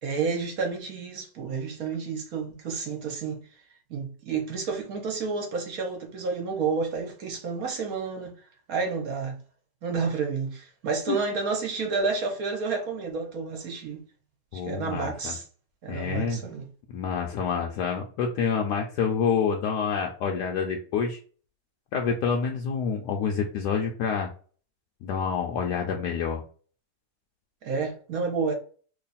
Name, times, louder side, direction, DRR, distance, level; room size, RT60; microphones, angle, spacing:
voice 1, 0.0-3.4 3.9-8.3 8.7-9.4 9.8-14.0 14.5-15.4 15.8-16.6 27.6-28.5, right 4 dB, 60° right, 1.1 m, -30 dB
voice 2, 14.5-15.3 15.9-16.4 16.9-21.2 21.9-24.3 25.0-26.4, left 6 dB, 75° left, 1.1 m, -27 dB
3.1 x 2.3 x 4.0 m
omnidirectional pair, 1.9 m